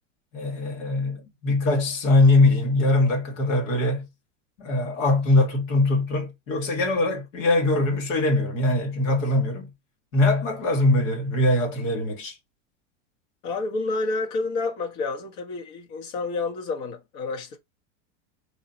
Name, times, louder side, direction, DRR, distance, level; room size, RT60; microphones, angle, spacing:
voice 1, 0.3-4.1 4.6-9.7 10.1-12.3, left 2 dB, 85° left, 2.0 m, -22 dB
voice 2, 13.4-17.6, left 3 dB, 60° left, 1.3 m, -29 dB
3.8 x 2.9 x 2.8 m
supercardioid pair, 125°, 39 cm